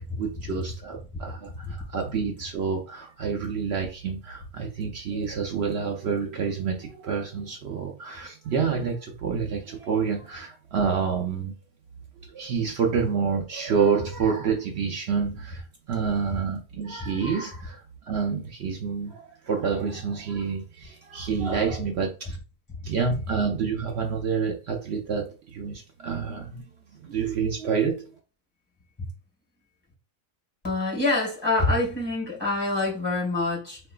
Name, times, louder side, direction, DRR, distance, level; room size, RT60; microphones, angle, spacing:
voice 1, 0.2-11.5 12.3-17.8 18.1-22.4 22.8-26.6 27.0-28.1, right 6 dB, 90° right, 0.5 m, -28 dB
voice 2, 30.6-33.8, left 2 dB, 15° left, 2.0 m, -26 dB
4.4 x 3.7 x 2.3 m
omnidirectional pair, 1.8 m